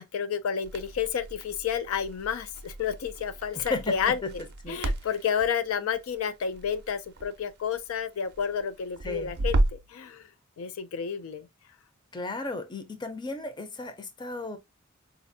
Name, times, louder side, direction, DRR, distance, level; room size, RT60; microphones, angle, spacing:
voice 1, 0.0-4.2 4.7-10.3 10.6-11.5, left 7 dB, 80° left, 0.4 m, -30 dB
Crackle, 0.6-9.9, right 2 dB, 50° right, 0.5 m, -34 dB
voice 2, 3.5-4.3 4.6-4.8 9.0-9.3 12.1-14.6, left 2 dB, 20° left, 0.5 m, -34 dB
4.1 x 2.5 x 2.5 m
head